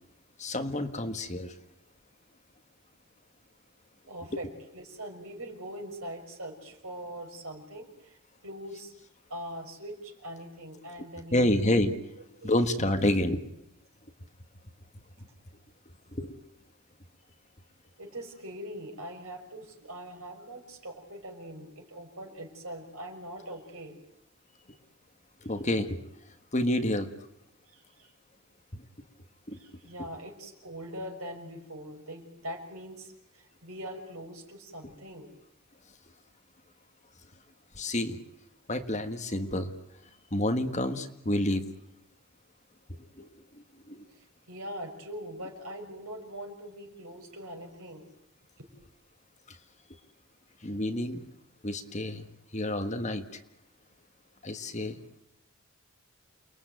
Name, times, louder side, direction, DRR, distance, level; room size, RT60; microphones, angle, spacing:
voice 1, 0.4-1.5 4.3-4.4 11.3-11.9 12.4-13.4 16.1-16.3 25.4-26.0 26.5-27.1 29.5-29.6 37.8-38.2 38.7-39.7 40.3-41.6 43.2-43.3 43.9-44.0 50.6-51.2 51.6-52.2 52.5-53.3 54.4-55.0, left 1 dB, 30° left, 7 dB, 1.6 m, -28 dB
voice 2, 4.1-4.5 4.7-8.2 8.4-8.9 9.3-11.6 12.4-12.5 18.0-24.0 27.7-28.1 29.5-35.3 44.1-48.1 48.6-48.7, equal, 75° right, 2 dB, 5.8 m, -42 dB
29.0 x 20.5 x 9.2 m, 0.80 s
head